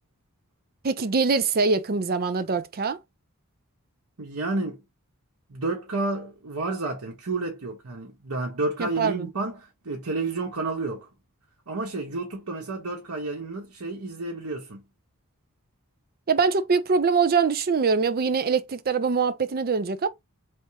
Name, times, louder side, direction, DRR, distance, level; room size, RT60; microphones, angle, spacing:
voice 1, 0.8-3.0 8.8-9.3 16.3-20.1, right 5 dB, 45° right, 0.5 m, -23 dB
voice 2, 4.2-4.8 5.5-11.1 11.7-14.8, right 2 dB, 85° right, 1.2 m, -30 dB
4.4 x 3.5 x 2.9 m
head